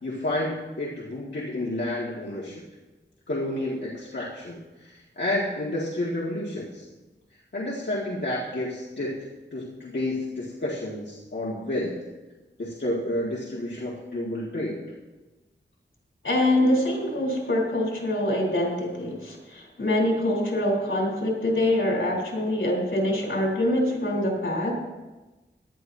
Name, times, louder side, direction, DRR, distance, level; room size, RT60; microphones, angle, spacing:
voice 1, 0.0-2.6 3.3-6.9 7.5-12.0 12.6-14.9, left 1 dB, 65° left, -6 dB, 2.0 m, -30 dB
voice 2, 16.2-24.7, left 1 dB, 80° left, -2 dB, 3.8 m, -24 dB
17.5 x 12.0 x 2.8 m, 1.1 s
wide cardioid pair, 50°, 20 cm